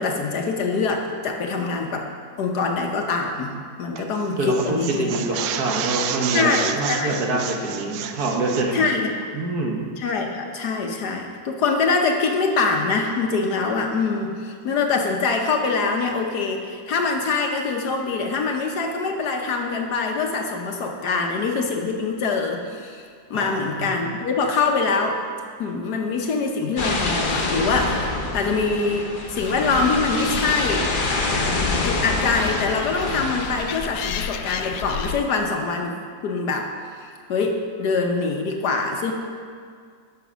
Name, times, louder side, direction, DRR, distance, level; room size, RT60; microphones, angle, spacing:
voice 1, 0.0-2.1 2.4-5.1 6.3-7.2 8.7-9.1 10.0-25.2 25.6-30.9 31.8-35.9 36.2-36.7 37.0-39.1, left 4 dB, 65° left, 2 dB, 1.3 m, -24 dB
sound 1, 4.0-4.2 4.5-8.7, right 8 dB, 80° right, 1.4 m, -30 dB
voice 2, 4.4-8.9 9.3-9.8 23.3-23.9 31.0-31.4 31.7-31.8, right 2 dB, 60° right, 0 dB, 1.5 m, -26 dB
sound 2, 26.8-33.8, left 3 dB, 40° left, 0.7 m, -26 dB
Animal, 29.4-35.2, left 8 dB, 85° left, 0.7 m, -34 dB
10.5 x 6.0 x 6.1 m, 2.1 s
omnidirectional pair, 2.1 m